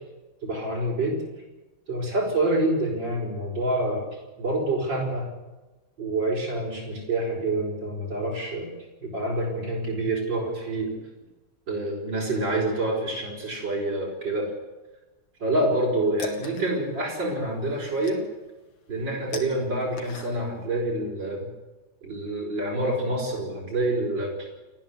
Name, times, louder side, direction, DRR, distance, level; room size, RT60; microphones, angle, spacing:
voice 1, 0.4-1.2 1.9-4.0 4.4-5.3 6.0-10.9 11.7-14.5 15.4-18.2 18.9-21.5 22.0-24.5, right 1 dB, 65° right, -4 dB, 5.9 m, -27 dB
sound 1, 15.6-20.7, left 5 dB, 80° left, 2.8 m, -42 dB
30.0 x 10.5 x 8.4 m, 1.1 s
omnidirectional pair, 2.1 m